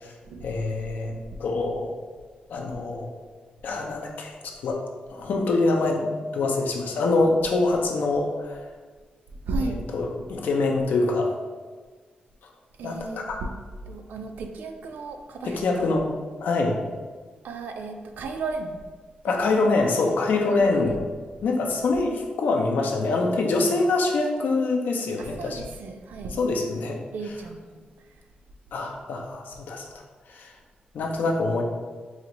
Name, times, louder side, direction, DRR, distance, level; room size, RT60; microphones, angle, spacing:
voice 1, 0.4-1.9 2.5-3.1 3.6-4.8 5.1-8.6 9.6-11.3 12.8-13.4 15.4-16.1 16.4-16.8 19.2-21.0 21.4-25.6 26.4-27.3 28.7-29.9 30.3-30.5 30.9-31.6, left 3 dB, 75° left, 1 dB, 0.5 m, -25 dB
voice 2, 9.4-9.8 12.8-13.5 13.9-15.6 17.4-18.8 20.5-21.0 25.2-26.4 27.1-27.8, right 3 dB, 85° right, 5 dB, 0.4 m, -34 dB
4.1 x 2.5 x 2.9 m, 1.4 s
wide cardioid pair, 175°, 3 cm